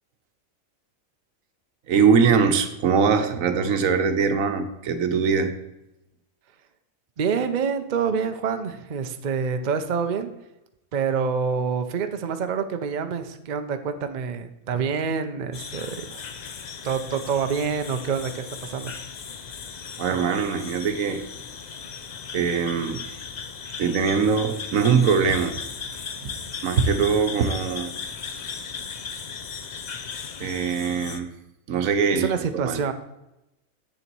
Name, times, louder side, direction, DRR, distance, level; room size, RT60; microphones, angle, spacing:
voice 1, 1.9-5.5 20.0-21.2 22.3-23.0 23.8-25.6 26.2-26.3 26.6-27.9 30.4-31.3 31.7-32.3 32.6-32.8, right 6 dB, 80° right, 8 dB, 1.2 m, -22 dB
voice 2, 7.2-10.3 10.9-16.2 16.8-18.9 32.1-32.9, right 6 dB, 45° right, 8 dB, 0.6 m, -27 dB
sound 1, 15.5-31.2, left 6 dB, 50° left, 0.5 m, -37 dB
8.2 x 6.8 x 4.5 m, 0.92 s
omnidirectional pair, 1.4 m